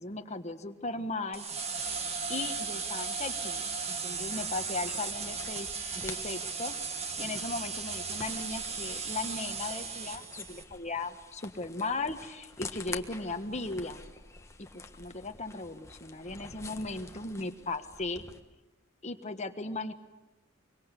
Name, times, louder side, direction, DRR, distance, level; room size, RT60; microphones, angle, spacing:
voice 1, 0.0-1.5 2.3-5.7 5.9-14.0 14.6-18.3 19.0-19.9, left 3 dB, 35° left, 6 dB, 1.5 m, -37 dB
sound 1, 1.3-10.6, right 5 dB, 30° right, 2.0 m, -36 dB
sound 2, 4.1-18.4, left 3 dB, 15° left, 1.5 m, -48 dB
25.0 x 24.0 x 8.4 m, 1.1 s
head